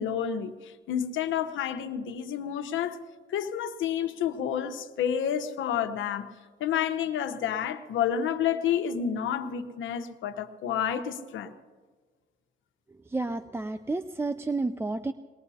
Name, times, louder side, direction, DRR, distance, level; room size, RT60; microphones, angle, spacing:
voice 1, 0.0-3.0 3.3-6.3 6.6-11.5, left 9 dB, 75° left, 8 dB, 1.0 m, -29 dB
voice 2, 13.1-15.1, right 3 dB, 10° right, 11 dB, 0.4 m, -30 dB
22.5 x 19.5 x 2.8 m, 1.5 s
cardioid pair, 90°, 20 cm